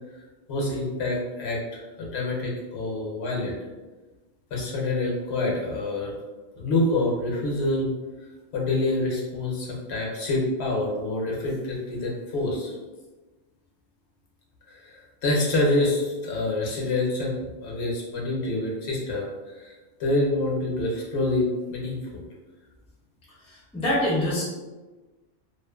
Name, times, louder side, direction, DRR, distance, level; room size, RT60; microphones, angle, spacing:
voice 1, 0.5-3.5 4.5-6.1 6.6-7.9 8.5-12.7 14.7-19.3 19.6-19.7 20.0-22.0, left 2 dB, 70° left, -3 dB, 0.9 m, -26 dB
voice 2, 23.7-24.4, left 1 dB, 10° left, -6 dB, 0.4 m, -24 dB
2.4 x 2.4 x 2.3 m, 1.2 s
omnidirectional pair, 1.2 m